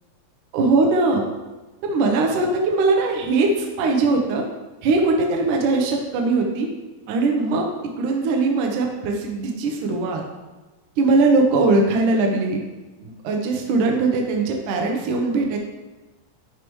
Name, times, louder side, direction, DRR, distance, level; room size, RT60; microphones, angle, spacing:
voice 1, 0.5-1.2 1.8-4.4 4.8-6.7 7.1-7.7 8.0-10.2 11.0-12.6 13.0-15.6, right 3 dB, 70° right, 1 dB, 2.0 m, -20 dB
12.0 x 4.9 x 3.1 m, 1.2 s
omnidirectional pair, 4.5 m